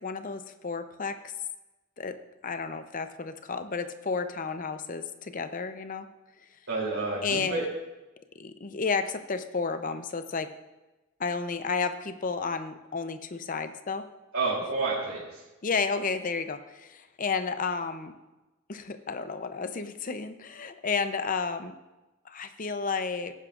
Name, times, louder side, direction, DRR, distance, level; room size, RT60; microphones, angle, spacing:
voice 1, 0.0-1.3 2.0-2.2 2.4-6.1 7.2-7.7 8.4-10.5 11.2-14.0 15.6-18.1 18.7-21.7 22.2-23.3, left 5 dB, 40° left, 9 dB, 0.6 m, -32 dB
voice 2, 6.7-7.6 14.3-15.4, right 3 dB, 75° right, -7 dB, 3.1 m, -29 dB
17.0 x 10.0 x 2.5 m, 1.1 s
head